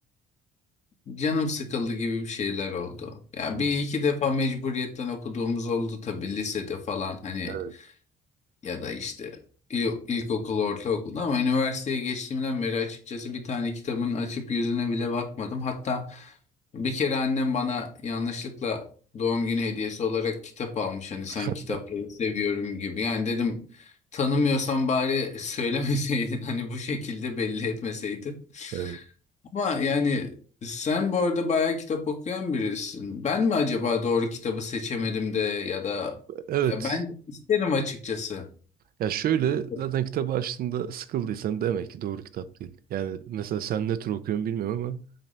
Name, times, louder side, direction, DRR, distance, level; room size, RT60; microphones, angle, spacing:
voice 1, 1.1-7.9 8.6-9.4 9.7-16.3 16.7-18.8 19.1-29.0 29.5-30.3 30.6-36.2 36.7-38.5 39.7-39.8, left 4 dB, 45° left, 2.0 m, -28 dB
voice 2, 21.4-21.8 28.7-29.0 36.5-37.0 39.0-45.0, right 10 dB, 60° right, 0.7 m, -29 dB
7.6 x 3.9 x 5.8 m
cardioid pair, 110°, 17 cm